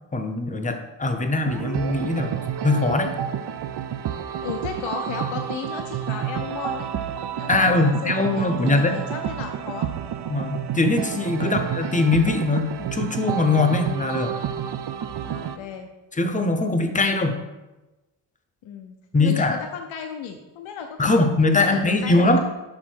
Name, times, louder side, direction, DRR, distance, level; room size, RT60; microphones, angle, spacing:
voice 1, 0.1-2.3 2.6-3.1 7.5-9.0 10.3-14.3 16.1-17.4 19.1-19.6 21.0-22.4, left 2 dB, 15° left, 6 dB, 0.7 m, -21 dB
sound 1, 1.5-15.6, right 9 dB, 60° right, 0.5 m, -30 dB
voice 2, 4.4-6.9 7.4-9.9 11.4-11.7 15.2-15.9 18.6-22.4, left 7 dB, 80° left, 5 dB, 0.6 m, -35 dB
6.4 x 3.6 x 4.5 m, 1.1 s
cardioid pair, 80°, 46 cm